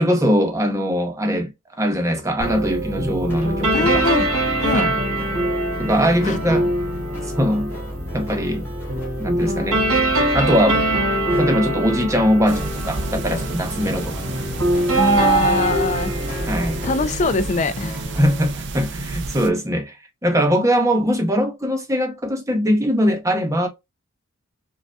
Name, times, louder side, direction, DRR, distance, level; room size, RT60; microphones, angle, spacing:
voice 1, 0.0-1.5 1.8-4.1 4.7-5.0 5.8-6.7 7.4-7.7 8.1-8.7 9.2-9.8 10.3-10.9 11.3-14.2 16.5-16.8 18.2-19.9 20.2-23.7, equal, 15° right, 0.7 m, -21 dB
sound 1, 2.4-17.0, right 1 dB, 85° right, 1.4 m, -23 dB
sound 2, 3.3-18.5, equal, 10° left, 1.3 m, -39 dB
voice 2, 3.7-4.3 4.6-4.8 6.2-6.4 14.9-16.1 16.8-18.0, left 3 dB, 35° left, 0.3 m, -22 dB
sound 3, 12.5-19.5, right 5 dB, 55° right, 0.5 m, -27 dB
5.1 x 2.3 x 2.2 m
head